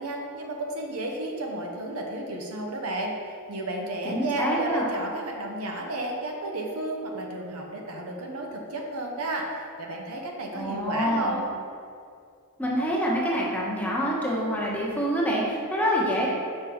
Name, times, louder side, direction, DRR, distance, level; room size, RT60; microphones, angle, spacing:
voice 1, 0.0-3.1 3.5-11.4, right 1 dB, 70° right, 1 dB, 0.9 m, -32 dB
voice 2, 4.0-4.9 10.5-11.4 12.6-16.3, equal, 5° left, -5 dB, 1.1 m, -26 dB
5.6 x 5.3 x 4.4 m, 2.3 s
head